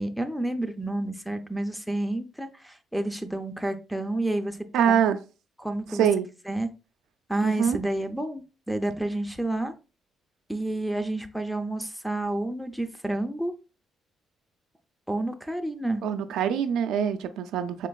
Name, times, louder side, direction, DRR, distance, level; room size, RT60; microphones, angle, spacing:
voice 1, 0.0-4.6 4.9-5.0 5.6-6.1 6.5-6.7 7.3-9.7 10.5-13.5 15.1-16.0, right 1 dB, ahead, 0.5 m, -29 dB
voice 2, 4.7-5.2 6.0-6.3 7.4-7.8 16.0-17.9, right 8 dB, 85° right, 0.4 m, -24 dB
4.3 x 2.9 x 2.3 m
cardioid pair, 90°, 0 cm